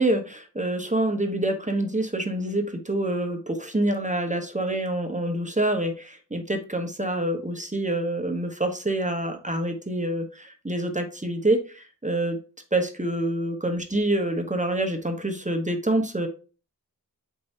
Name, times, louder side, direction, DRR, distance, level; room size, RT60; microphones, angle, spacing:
voice 1, 0.0-12.4 12.7-16.3, right 1 dB, 20° right, 5 dB, 1.1 m, -26 dB
7.5 x 5.4 x 2.7 m, 0.36 s
wide cardioid pair, 50°, 35 cm